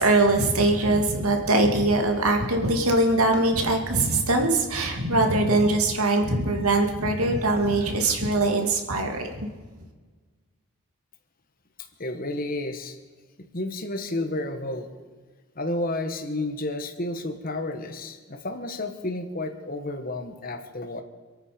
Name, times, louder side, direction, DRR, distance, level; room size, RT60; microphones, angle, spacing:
voice 1, 0.0-9.5, right 2 dB, 75° right, 3 dB, 2.5 m, -22 dB
voice 2, 12.0-13.0 13.5-14.9 15.6-21.0, left 2 dB, 40° left, 6 dB, 1.3 m, -31 dB
27.0 x 9.1 x 5.2 m, 1.4 s
head